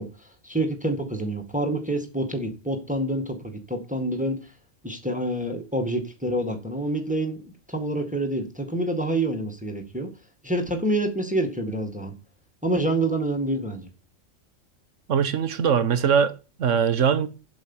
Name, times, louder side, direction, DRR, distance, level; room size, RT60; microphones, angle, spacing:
voice 1, 0.0-4.4 4.8-10.1 10.4-12.1 12.6-13.9, right 1 dB, 5° right, 1.8 m, -27 dB
voice 2, 15.1-17.3, right 7 dB, 70° right, 1.4 m, -22 dB
8.2 x 7.3 x 7.2 m
omnidirectional pair, 1.4 m